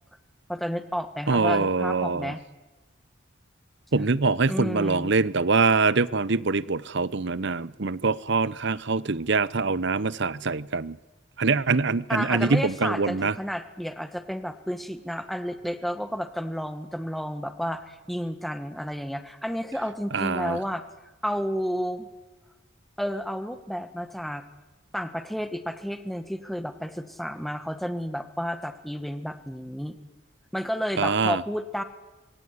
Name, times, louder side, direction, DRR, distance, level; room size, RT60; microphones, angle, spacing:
voice 1, 0.5-2.4 4.4-5.1 12.1-20.8 21.2-22.1 23.0-24.4 24.9-30.0 30.5-31.8, equal, ahead, 1.6 m, -31 dB
voice 2, 1.3-2.3 3.9-11.0 11.4-13.3 20.1-20.6 31.0-31.4, right 4 dB, 55° right, 0.8 m, -24 dB
26.0 x 22.0 x 9.7 m
head